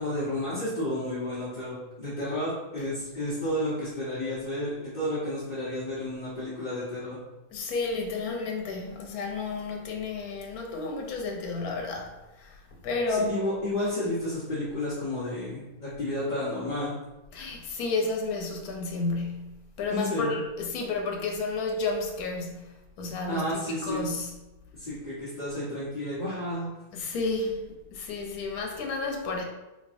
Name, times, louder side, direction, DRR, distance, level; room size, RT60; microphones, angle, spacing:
voice 1, 0.0-7.2 13.1-16.9 19.9-20.4 23.3-24.1 24.7-26.7, left 1 dB, 35° left, -10 dB, 1.0 m, -31 dB
voice 2, 7.5-13.3 17.3-24.3 26.9-29.4, left 3 dB, 90° left, 2 dB, 1.2 m, -32 dB
3.9 x 3.2 x 2.5 m, 1.0 s
omnidirectional pair, 1.5 m